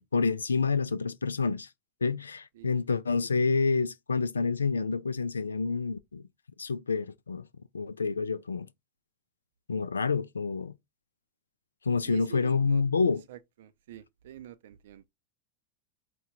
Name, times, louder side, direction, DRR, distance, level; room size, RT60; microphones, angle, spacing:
voice 1, 0.0-1.7 2.0-6.2 6.6-7.5 7.7-8.7 9.7-10.7 11.8-13.2, left 4 dB, 80° left, 0.4 m, -28 dB
voice 2, 12.1-12.8 13.3-15.0, right 12 dB, 60° right, 0.5 m, -46 dB
4.7 x 2.3 x 4.1 m
figure-of-eight pair, 85°, 0 cm